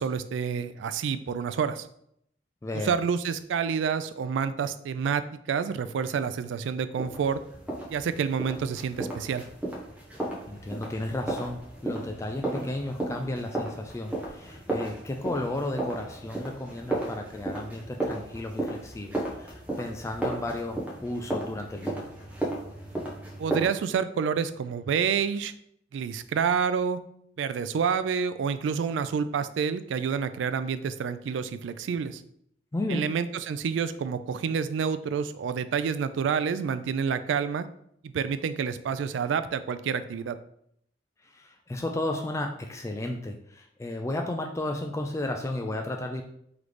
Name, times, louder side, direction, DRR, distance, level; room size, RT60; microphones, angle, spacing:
voice 1, 0.0-1.9 2.7-7.4 7.9-9.5 23.4-25.5 25.9-27.0 27.4-32.2 32.9-37.7 38.0-40.4, right 6 dB, 85° right, 12 dB, 0.3 m, -28 dB
voice 2, 2.6-2.9 10.5-22.0 32.7-33.1 41.2-46.2, left 1 dB, 15° left, 3 dB, 0.3 m, -33 dB
sound 1, 7.0-23.6, right 2 dB, 10° right, 0.9 m, -35 dB
3.8 x 3.2 x 3.2 m, 0.71 s
head